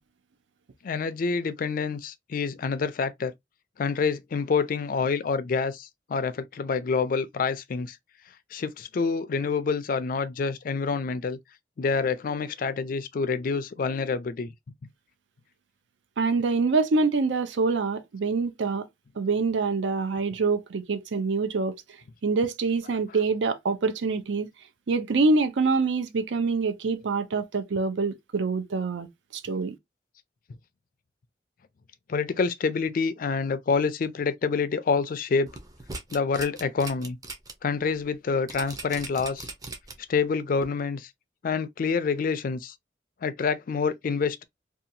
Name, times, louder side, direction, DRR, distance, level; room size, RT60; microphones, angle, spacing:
voice 1, 0.8-3.3 3.8-8.0 8.5-11.4 11.8-14.5 23.1-23.2 32.1-35.5 36.1-37.2 37.6-39.5 40.1-41.1 41.4-42.7 43.2-44.4, left 5 dB, 50° left, 0.4 m, -27 dB
voice 2, 16.2-18.9 19.2-21.8 22.2-24.5 24.9-29.7, right 4 dB, 80° right, 0.5 m, -25 dB
sound 1, 35.5-37.5 37.9-38.0 38.5-40.1 40.6-40.7, right 3 dB, 20° right, 0.5 m, -39 dB
2.8 x 2.3 x 2.5 m
head